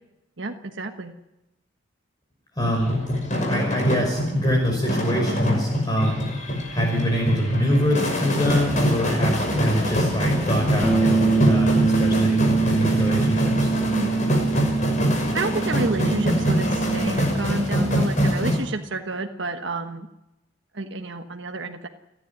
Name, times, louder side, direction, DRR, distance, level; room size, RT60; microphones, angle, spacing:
voice 1, 0.4-1.1 13.9-14.2 15.3-20.1 20.7-21.9, right 2 dB, 60° right, 4 dB, 1.4 m, -29 dB
sound 1, 2.6-18.6, equal, 40° left, 6.0 m, -24 dB
voice 2, 2.6-2.9 3.5-6.2 6.7-13.7, equal, 20° left, 1 dB, 5.0 m, -25 dB
Bass guitar, 10.8-17.1, right 4 dB, 5° right, 1.8 m, -23 dB
29.5 x 11.0 x 9.8 m, 0.96 s
head